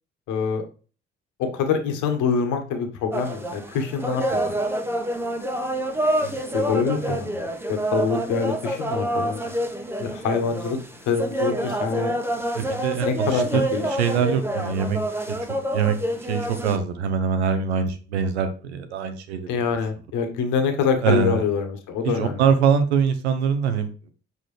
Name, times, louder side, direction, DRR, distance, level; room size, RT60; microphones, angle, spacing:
voice 1, 0.3-0.6 1.4-4.6 6.5-9.4 10.0-10.8 11.1-12.1 12.9-13.9 19.5-22.4, left 6 dB, 65° left, 5 dB, 1.5 m, -25 dB
sound 1, 3.1-16.8, right 1 dB, 5° right, 1.2 m, -27 dB
voice 2, 12.5-13.7 14.0-15.0 15.3-15.4 15.7-15.9 16.3-19.6 21.0-21.4 22.0-24.1, right 6 dB, 80° right, 9 dB, 0.9 m, -23 dB
7.2 x 4.5 x 3.3 m, 0.37 s
figure-of-eight pair, 45°, 32 cm